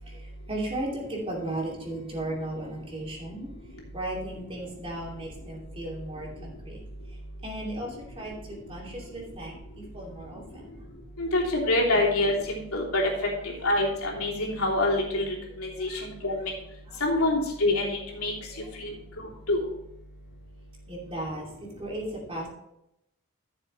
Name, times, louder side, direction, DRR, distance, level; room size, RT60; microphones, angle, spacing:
voice 1, 0.0-3.5 3.9-6.8 7.4-10.7 11.9-12.0 15.8-16.0 16.9-17.0 18.5-18.7 20.9-21.5 21.8-22.5, right 1 dB, 25° right, -2 dB, 2.7 m, -36 dB
voice 2, 11.2-13.0 13.4-15.2 15.6-16.5 17.0-18.3 18.8-18.9 19.5-19.6, left 2 dB, 90° left, -3 dB, 3.0 m, -26 dB
14.0 x 7.0 x 3.2 m, 0.83 s
head